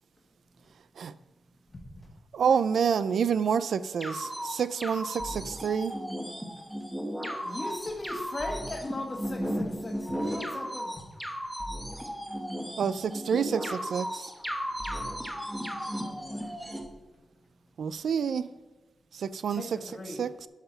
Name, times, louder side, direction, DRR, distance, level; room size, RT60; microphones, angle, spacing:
voice 1, 2.4-6.0 12.8-14.3 17.8-18.5 19.1-20.5, right 7 dB, 90° right, 15 dB, 0.4 m, -28 dB
sound 1, 4.0-16.8, equal, 5° right, 1.2 m, -35 dB
voice 2, 6.6-7.5 11.7-12.8 14.7-16.5 17.2-18.1 19.1-19.5, right 2 dB, 35° right, 6 dB, 1.0 m, -66 dB
voice 3, 7.4-10.9 16.0-16.5 19.5-20.2, left 2 dB, 30° left, 4 dB, 1.3 m, -38 dB
11.0 x 5.8 x 5.7 m, 1.2 s
wide cardioid pair, 155°, 0 cm